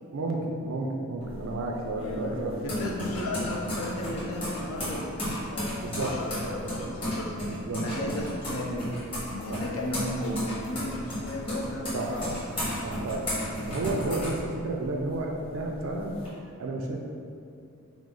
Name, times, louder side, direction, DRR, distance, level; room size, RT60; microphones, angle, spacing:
voice 1, 0.1-2.6 5.8-6.2 6.6-6.9 7.6-8.2 9.5-9.6 11.9-12.2 12.8-16.2 16.6-17.0, right 2 dB, 60° right, 1 dB, 0.4 m, -32 dB
sound 1, 1.2-15.0 15.4-16.3, equal, 25° left, 1.1 m, -34 dB
voice 2, 2.0-7.3 7.8-8.8 9.2-12.3 14.2-14.3, left 1 dB, 70° left, -2 dB, 0.7 m, -35 dB
5.0 x 2.0 x 3.7 m, 2.6 s
head